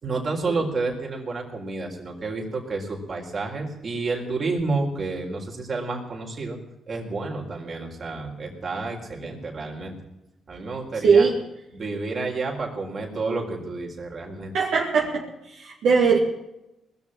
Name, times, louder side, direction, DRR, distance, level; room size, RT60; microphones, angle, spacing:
voice 1, 0.0-6.6 6.9-9.9 10.5-11.3 11.7-14.5, right 3 dB, 50° right, 1 dB, 4.2 m, -30 dB
voice 2, 11.0-11.4 14.5-16.2, right 5 dB, 75° right, -3 dB, 2.5 m, -20 dB
20.0 x 7.2 x 9.8 m, 0.91 s
supercardioid pair, 65°, 0 cm